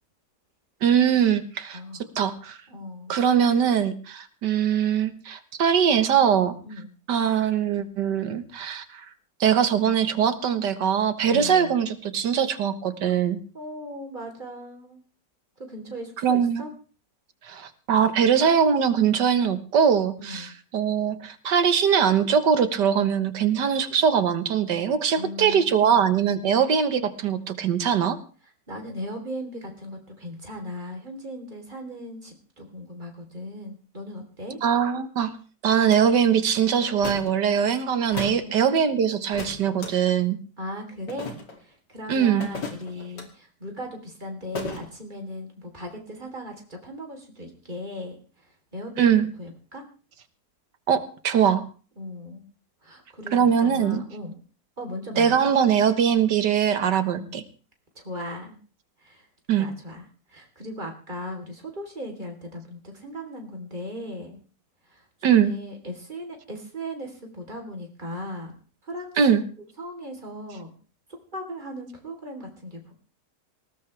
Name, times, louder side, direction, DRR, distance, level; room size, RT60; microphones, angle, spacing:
voice 1, 0.8-1.8 2.2-2.6 3.1-6.5 7.1-9.0 9.4-13.4 16.2-16.6 17.4-28.2 34.6-35.3 35.6-40.4 42.1-42.5 49.0-49.3 50.9-51.7 53.3-54.0 55.2-57.4 59.5-59.7 65.2-65.5 69.2-69.4, right 8 dB, 80° right, 11 dB, 1.9 m, -22 dB
voice 2, 1.7-2.0 2.7-3.2 6.6-6.9 11.3-11.8 13.1-13.2 13.5-15.0 15.7-16.7 20.2-20.5 25.2-26.0 28.7-34.6 38.3-38.7 40.6-41.3 41.6-48.5 48.7-49.8 52.0-52.5 52.8-54.4 54.8-55.3 57.0-57.4 58.0-58.6 59.0-59.3 59.6-64.4 64.9-68.6 68.8-69.1 69.8-70.7 71.3-72.9, left 1 dB, 25° right, 2 dB, 3.7 m, -38 dB
sound 1, 35.9-36.0 37.0-37.3 38.1-38.4 39.3-39.9 41.1-41.6 42.4-43.3 44.5-44.9, left 2 dB, 85° left, 3.3 m, -34 dB
19.5 x 18.0 x 3.4 m, 0.38 s
omnidirectional pair, 1.8 m